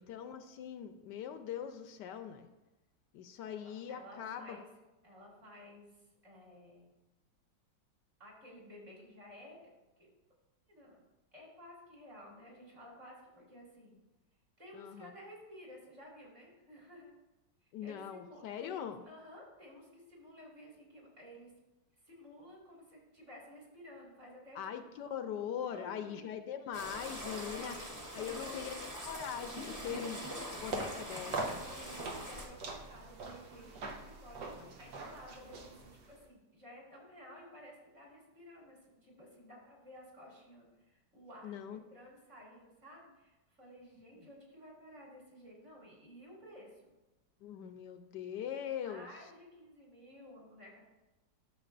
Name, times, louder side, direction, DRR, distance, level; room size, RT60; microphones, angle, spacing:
voice 1, 0.0-2.5 3.1-4.6 14.7-15.1 17.7-19.0 24.5-27.8 28.1-30.2 30.5-31.6 34.5-34.7 41.4-41.8 44.2-44.3 47.4-49.1, left 9 dB, 80° left, 8 dB, 1.2 m, -42 dB
voice 2, 3.5-4.7 5.0-6.9 8.2-9.7 10.0-10.1 10.7-11.0 11.3-14.0 14.6-17.1 17.6-21.5 22.0-24.9 25.3-26.4 27.4-28.8 29.9-30.1 31.7-46.9 48.8-50.8, equal, 40° right, -3 dB, 2.9 m, -54 dB
sound 1, 26.7-32.4, equal, 15° right, 0.7 m, -43 dB
sound 2, 30.6-36.2, right 3 dB, 75° right, 1.5 m, -43 dB
12.0 x 6.6 x 2.6 m, 1.1 s
omnidirectional pair, 1.9 m